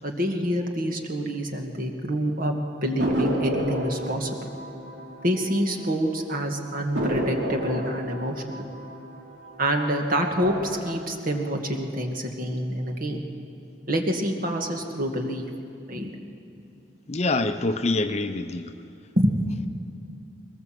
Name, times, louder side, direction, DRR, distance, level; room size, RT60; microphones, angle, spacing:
voice 1, 0.0-2.5 2.8-4.3 5.2-8.7 9.6-13.2 13.9-15.5 15.9-16.1 19.2-19.6, equal, 50° right, 3 dB, 2.0 m, -27 dB
sound 1, 3.0-6.0 6.3-6.4 6.9-9.9 10.3-10.9, equal, 85° right, 3.0 m, -30 dB
voice 2, 17.1-18.7, left 2 dB, 35° left, 9 dB, 0.7 m, -25 dB
21.5 x 19.0 x 7.7 m, 2.6 s
head